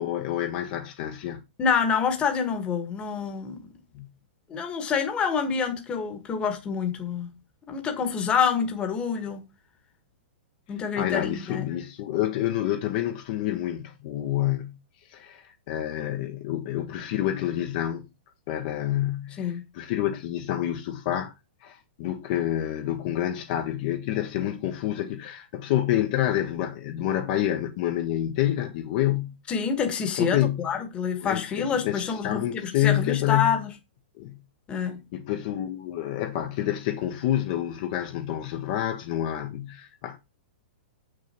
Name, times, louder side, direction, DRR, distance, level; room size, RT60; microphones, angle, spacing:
voice 1, 0.0-1.4 3.9-4.1 11.0-14.8 15.1-18.1 18.5-21.3 21.6-29.4 30.2-30.7 31.2-33.6 34.2-34.4 35.1-40.2, left 12 dB, 45° left, 1.2 m, -28 dB
voice 2, 1.6-3.7 4.5-7.3 7.7-9.4 10.7-11.7 19.4-19.6 29.5-33.7 34.7-35.0, left 6 dB, 20° left, 1.6 m, -27 dB
7.5 x 6.5 x 4.4 m
hypercardioid pair, 150°, 6 cm